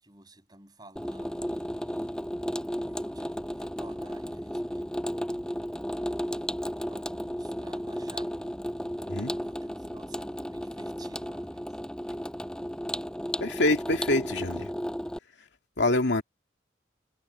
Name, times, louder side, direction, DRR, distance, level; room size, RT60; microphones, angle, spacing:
voice 1, 0.0-2.4 2.9-4.9 5.8-8.3 9.0-11.6, right 2 dB, 25° right, 5.9 m, -53 dB
Water tap faucet / Sink (filling or washing), 1.0-15.2, equal, 5° left, 7.6 m, -34 dB
voice 2, 13.4-14.7 15.8-16.2, left 2 dB, 85° left, 2.4 m, -25 dB
head